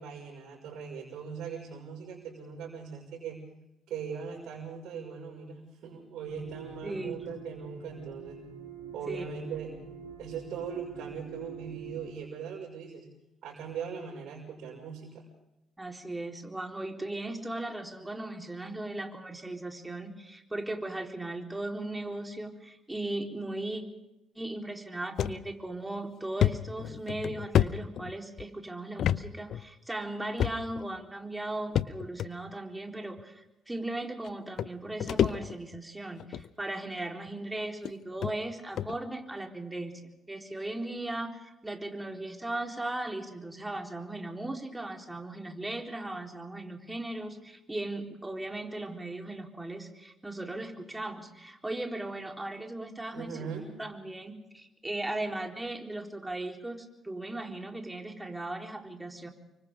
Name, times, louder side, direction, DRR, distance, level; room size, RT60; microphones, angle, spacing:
voice 1, 0.0-3.4 3.9-8.4 8.9-9.8 10.2-13.1 13.4-15.2 53.1-53.6, right 6 dB, 65° right, -4 dB, 5.8 m, -40 dB
sound 1, 6.2-12.1, right 6 dB, 90° right, 3.9 m, -45 dB
voice 2, 6.8-7.3 9.1-9.3 15.8-23.8 24.3-40.0 40.3-53.4 53.8-59.3, right 2 dB, 15° right, 2 dB, 4.0 m, -37 dB
sound 2, 25.2-25.4 25.8-25.9 26.4-28.4 29.0-29.2 29.5-29.6 30.4-30.9 31.8-32.3 33.2-33.3 34.2-34.3 34.6-35.8 36.2-36.5 37.3-37.4 37.8-37.9 38.2-38.3 38.8-39.0, left 10 dB, 60° left, 0.8 m, -28 dB
29.0 x 24.5 x 3.8 m, 0.90 s
hypercardioid pair, 50°, 0 cm